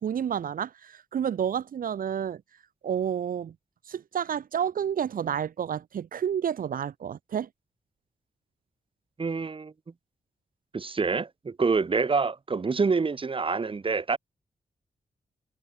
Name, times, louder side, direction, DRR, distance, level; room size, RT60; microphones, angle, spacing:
voice 1, 0.0-2.4 2.8-3.5 3.8-7.5, right 8 dB, 80° right, 1.7 m, -30 dB
voice 2, 9.2-9.7 10.7-14.2, right 4 dB, 40° right, 3.4 m, -26 dB
wide cardioid pair, 115°, 14 cm